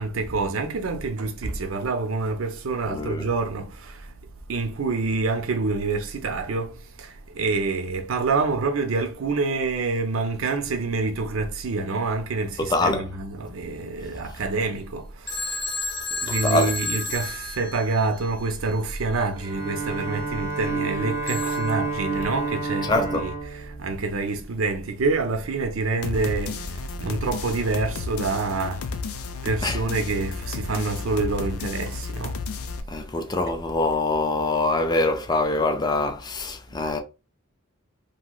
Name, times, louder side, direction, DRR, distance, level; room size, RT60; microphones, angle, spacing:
voice 1, 0.0-4.1 4.5-15.6 16.1-28.9 29.4-32.4, right 3 dB, 75° right, 0.6 m, -27 dB
voice 2, 2.9-3.3 12.6-13.1 16.3-16.7 22.9-23.3 29.6-29.8 32.9-37.0, left 2 dB, 20° left, 0.3 m, -24 dB
Telephone, 15.3-18.3 21.3-21.7, left 3 dB, 50° left, 0.7 m, -31 dB
Bowed string instrument, 19.4-24.6, right 3 dB, 15° right, 0.7 m, -30 dB
sound 1, 26.0-32.8, left 4 dB, 85° left, 0.5 m, -32 dB
3.0 x 2.7 x 2.3 m
head